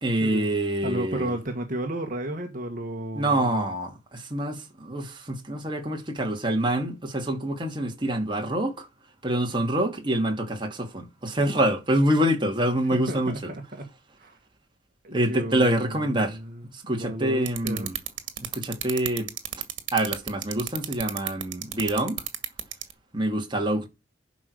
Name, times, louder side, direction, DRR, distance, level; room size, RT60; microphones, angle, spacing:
voice 1, 0.0-1.3 3.1-8.9 9.2-13.5 15.1-16.4 16.7-18.0 18.4-19.3 19.9-22.2 23.1-23.9, right 1 dB, 25° right, 2.6 m, -26 dB
voice 2, 0.8-3.7 12.9-13.9 14.2-14.4 15.0-17.9, right 1 dB, 45° right, 1.8 m, -33 dB
sound 1, 17.5-22.9, right 12 dB, 75° right, 2.0 m, -30 dB
11.0 x 5.2 x 6.4 m
head